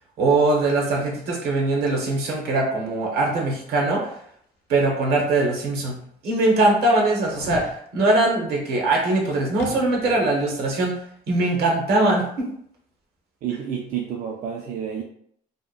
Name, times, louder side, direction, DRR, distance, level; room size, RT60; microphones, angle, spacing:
voice 1, 0.2-4.1 4.7-11.0 11.3-12.5, right 2 dB, 75° right, 0 dB, 0.8 m, -21 dB
sound 1, 6.0-6.1 7.2-7.8 9.6-10.3 10.6-10.7, left 4 dB, 85° left, 0.4 m, -36 dB
voice 2, 13.4-15.0, right 8 dB, 50° right, 0 dB, 0.4 m, -29 dB
2.8 x 2.2 x 2.4 m, 0.66 s
cardioid pair, 110°, 17 cm